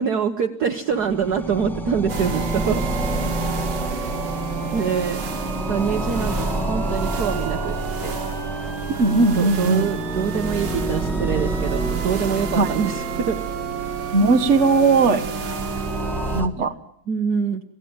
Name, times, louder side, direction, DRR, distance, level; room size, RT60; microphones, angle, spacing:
voice 1, 0.0-2.8 3.9-4.1 4.7-5.3 5.7-8.1 9.3-13.4 16.6-16.7 17.1-17.6, right 6 dB, 55° right, 5 dB, 1.5 m, -25 dB
sound 1, 0.9-16.5, right 1 dB, ahead, 1.6 m, -29 dB
sound 2, 2.1-16.4, right 6 dB, 70° right, 2.3 m, -31 dB
voice 2, 9.0-9.9 12.5-12.7 14.1-15.2 16.3-16.7, right 3 dB, 35° right, 7 dB, 1.6 m, -18 dB
28.0 x 16.5 x 8.8 m, 0.75 s
omnidirectional pair, 2.3 m